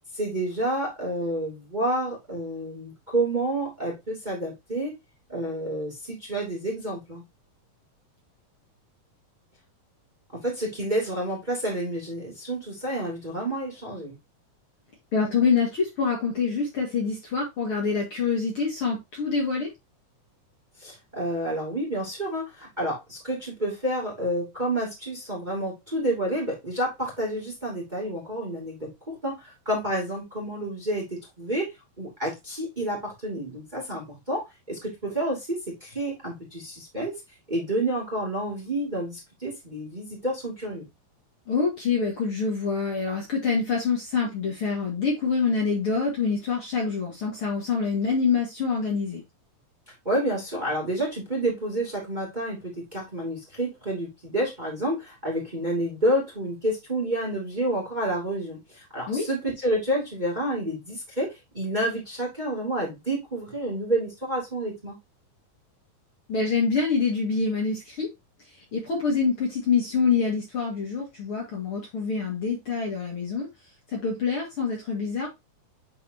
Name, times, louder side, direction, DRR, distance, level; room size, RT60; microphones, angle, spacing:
voice 1, 0.1-4.9 5.3-7.2 10.3-14.2 20.8-37.2 37.5-40.8 50.0-65.0, right 1 dB, 15° right, 2.3 m, -29 dB
voice 2, 15.1-19.7 41.5-49.2 59.1-59.3 66.3-68.1 68.7-73.5 73.9-75.3, left 5 dB, 45° left, 2.3 m, -26 dB
8.9 x 4.3 x 2.8 m
omnidirectional pair, 3.9 m